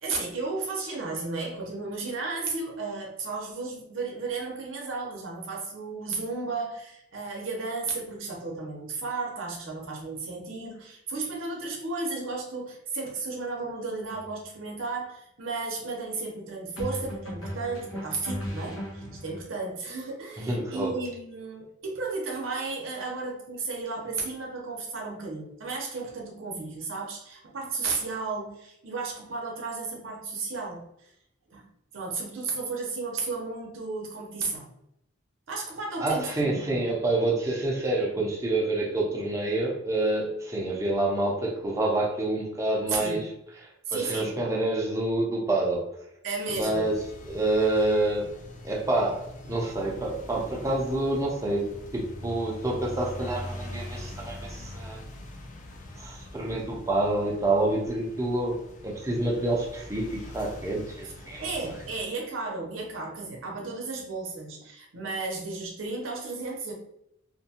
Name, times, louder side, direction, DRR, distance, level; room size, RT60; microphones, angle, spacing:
voice 1, 0.0-31.1 31.5-31.6 31.9-34.7 35.5-36.9 42.9-43.3 43.9-44.3 46.2-46.9 61.4-66.7, right 3 dB, 70° right, -1 dB, 0.6 m, -34 dB
sound 1, 14.1-14.3 16.8-19.4, equal, 90° left, 0.8 m, -36 dB
voice 2, 20.4-20.9 36.0-43.2 43.9-45.9 46.5-47.0 47.3-48.3 48.6-55.0 56.0-58.6 58.8-61.5, right 2 dB, 15° right, -2 dB, 0.5 m, -27 dB
sound 2, 46.6-62.0, left 1 dB, 40° left, 0.4 m, -43 dB
2.5 x 2.2 x 2.7 m, 0.79 s
head